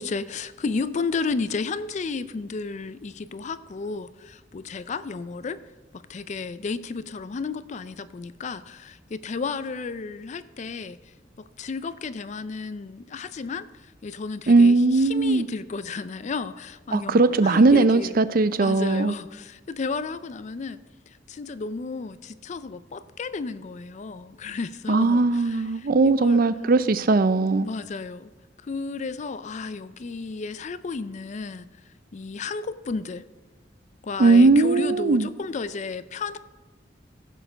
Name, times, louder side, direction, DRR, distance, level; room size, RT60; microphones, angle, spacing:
voice 1, 0.0-5.6 5.9-11.0 11.4-18.2 18.6-20.8 21.1-26.4 27.6-28.3 28.6-31.7 32.1-33.2 34.0-36.4, left 4 dB, 40° left, 0.4 m, -33 dB
voice 2, 14.5-15.5 16.9-19.1 24.9-27.7 34.2-35.3, right 3 dB, 55° right, 0.5 m, -19 dB
15.0 x 6.6 x 5.1 m
head